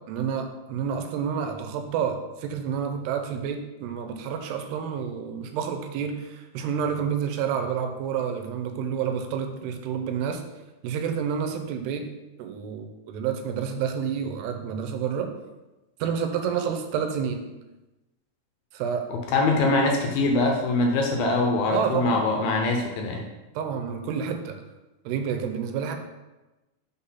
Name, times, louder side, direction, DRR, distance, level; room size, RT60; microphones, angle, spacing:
voice 1, 0.1-10.4 10.8-12.1 12.4-15.3 16.0-17.5 18.7-19.1 21.7-22.3 23.6-24.6 25.1-26.0, right 7 dB, 85° right, 5 dB, 2.8 m, -29 dB
voice 2, 19.1-23.3, left 2 dB, 75° left, 1 dB, 2.3 m, -23 dB
6.1 x 4.0 x 5.6 m, 1.1 s
omnidirectional pair, 4.7 m